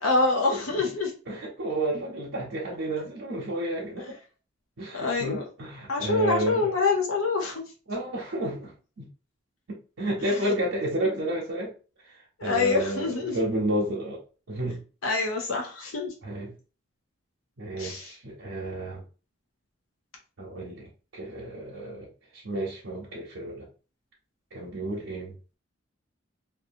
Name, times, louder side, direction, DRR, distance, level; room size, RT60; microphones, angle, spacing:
voice 1, 0.0-1.1 4.9-5.4 5.9-7.6 10.3-10.5 12.4-13.4 15.0-16.1 17.8-18.1, left 4 dB, 80° left, 0.7 m, -26 dB
voice 2, 0.5-0.8 1.3-4.1 4.8-6.8 7.9-9.1 9.7-11.7 12.0-14.2 14.5-14.8 16.2-16.5 17.6-19.0 20.4-22.1 22.3-23.7 24.5-25.4, right 1 dB, 70° right, 0.7 m, -31 dB
2.7 x 2.3 x 2.7 m
head